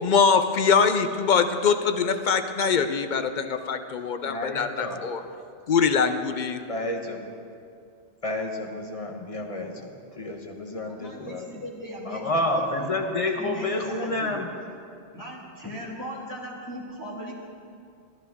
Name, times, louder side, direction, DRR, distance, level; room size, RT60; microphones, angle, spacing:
voice 1, 0.0-5.2 5.7-6.6, left 6 dB, 55° left, 9 dB, 0.6 m, -23 dB
voice 2, 4.3-5.0 6.7-7.4 8.2-9.9 10.1-11.5 12.1-14.5, left 1 dB, 30° left, 3 dB, 1.0 m, -29 dB
voice 3, 10.8-12.9 13.3-14.4 15.1-17.3, equal, 15° left, -7 dB, 1.7 m, -38 dB
15.0 x 11.0 x 3.6 m, 2.3 s
omnidirectional pair, 1.2 m